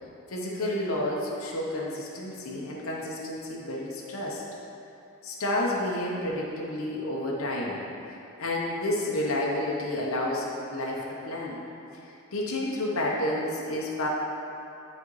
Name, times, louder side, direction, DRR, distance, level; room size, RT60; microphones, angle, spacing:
voice 1, 0.3-4.4 5.2-7.8 8.4-11.6 12.3-14.1, left 1 dB, 75° left, -4 dB, 0.9 m, -30 dB
11.0 x 4.3 x 3.1 m, 2.8 s
head